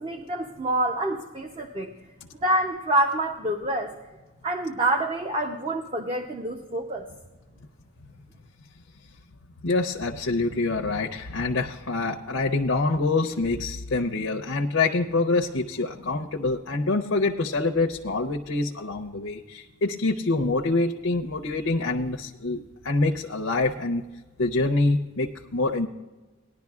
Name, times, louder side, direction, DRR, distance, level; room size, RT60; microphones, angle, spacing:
voice 1, 0.0-1.9 2.4-3.9 4.4-7.1, right 1 dB, 30° right, 3 dB, 0.6 m, -27 dB
voice 2, 9.6-24.0 24.4-25.9, left 3 dB, 90° left, 2 dB, 0.6 m, -26 dB
19.0 x 11.0 x 2.4 m, 1.2 s
head